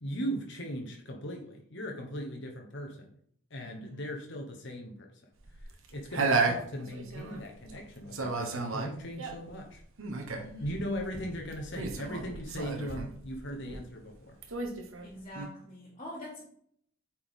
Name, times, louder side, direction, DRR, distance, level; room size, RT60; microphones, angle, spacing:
voice 1, 0.0-3.1 3.5-5.1 5.6-9.8 10.6-14.4, equal, 55° left, 2 dB, 1.1 m, -38 dB
voice 2, 3.6-4.0 10.4-10.8 15.0-16.4, left 1 dB, 30° left, -6 dB, 1.8 m, -45 dB
sound 1, 5.4-7.8 8.1-14.1 14.4-15.5, right 4 dB, 75° right, 1.2 m, -33 dB
8.8 x 4.5 x 3.7 m, 0.64 s
head